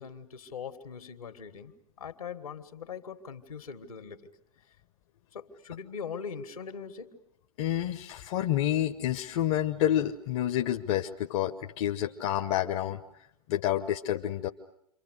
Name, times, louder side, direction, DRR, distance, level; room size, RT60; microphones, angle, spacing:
voice 1, 0.0-4.3 5.3-7.2, left 6 dB, 80° left, 8 dB, 2.1 m, -41 dB
voice 2, 7.6-13.0 13.5-14.5, left 12 dB, 50° left, 5 dB, 1.1 m, -29 dB
28.5 x 24.5 x 6.5 m, 0.76 s
figure-of-eight pair, 95°, 18 cm